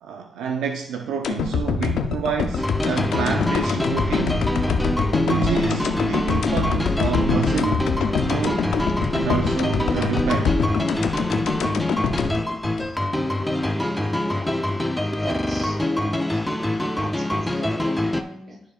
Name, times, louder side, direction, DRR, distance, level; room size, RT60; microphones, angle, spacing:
voice 1, 0.0-4.5 5.2-7.9 8.2-8.7 9.1-10.6, right 7 dB, 90° right, 0.5 m, -28 dB
sound 1, 1.2-13.5 13.8-13.9, left 6 dB, 80° left, 0.5 m, -25 dB
sound 2, 2.6-18.2, left 1 dB, 5° left, 0.6 m, -24 dB
voice 2, 14.1-14.6 15.1-16.4 16.7-18.6, right 1 dB, 35° right, 2.6 m, -39 dB
12.0 x 4.2 x 2.5 m
cardioid pair, 65°, 0 cm